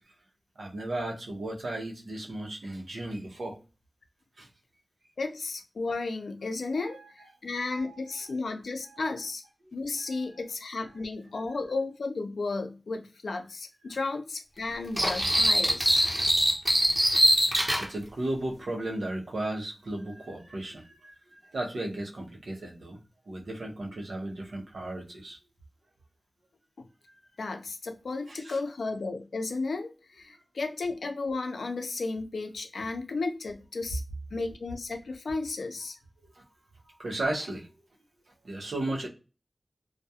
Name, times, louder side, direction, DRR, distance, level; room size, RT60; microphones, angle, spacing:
voice 1, 0.6-3.6 4.4-4.5 6.7-7.1 7.7-8.3 8.8-9.1 10.1-10.4 10.9-11.0 16.4-16.8 17.8-23.0 23.3-25.4 28.3-28.6 36.3-36.4 37.0-37.7 38.4-39.1, right 1 dB, 80° right, 0 dB, 0.7 m, -35 dB
voice 2, 5.2-9.4 9.7-16.0 26.8-26.9 27.4-34.0 34.3-36.0, left 3 dB, 85° left, 4 dB, 0.5 m, -34 dB
sound 1, 15.0-17.9, equal, 30° right, 0.9 m, -23 dB
2.3 x 2.2 x 2.8 m, 0.32 s
cardioid pair, 40°, 0 cm